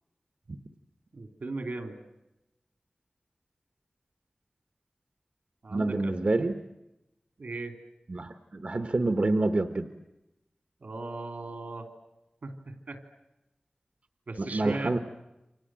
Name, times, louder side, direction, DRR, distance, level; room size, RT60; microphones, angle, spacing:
voice 1, 1.1-2.0 5.6-6.1 7.4-7.7 10.8-11.9 12.4-13.0 14.3-15.0, right 2 dB, 85° right, 5 dB, 3.3 m, -37 dB
voice 2, 5.7-6.6 8.1-9.9 14.4-15.0, right 2 dB, 60° right, 7 dB, 1.2 m, -27 dB
29.5 x 25.0 x 7.7 m, 0.95 s
wide cardioid pair, 70°, 3 cm